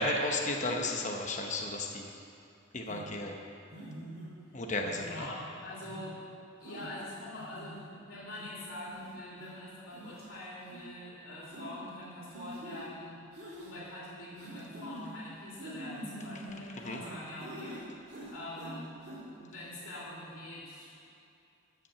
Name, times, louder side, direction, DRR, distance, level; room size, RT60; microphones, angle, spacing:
voice 1, 0.0-2.1 2.7-3.4 4.5-5.3 16.8-17.0, left 2 dB, 35° left, 2 dB, 0.9 m, -33 dB
sound 1, 2.9-3.1 3.7-4.3 4.8-5.3 5.8-6.1 6.6-6.9 7.4-7.8 8.4-8.5 8.8-9.0 9.4-9.5 9.9-10.3 10.6-10.8 11.5-11.7 12.3-12.8 13.3-13.7 14.4-15.1 15.6-17.1 17.4-17.8 18.1-18.7 19.0-19.2, equal, 45° right, 2.9 m, -45 dB
voice 2, 4.9-6.2 6.6-13.2 13.6-17.7 18.3-18.9 19.3-21.0, left 1 dB, 75° left, -7 dB, 2.9 m, -44 dB
13.0 x 5.9 x 6.9 m, 2.6 s
head